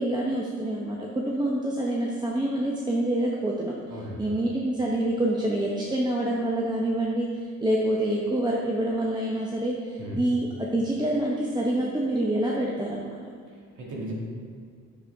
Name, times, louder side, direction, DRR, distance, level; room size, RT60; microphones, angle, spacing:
voice 1, 0.0-3.7 4.2-10.5 10.7-13.2, right 1 dB, 15° right, -3 dB, 1.0 m, -26 dB
voice 2, 3.9-4.4 10.0-10.2 13.5-14.1, right 1 dB, 75° right, -3 dB, 2.2 m, -37 dB
8.2 x 7.1 x 3.6 m, 2.2 s
cardioid pair, 90°, 30 cm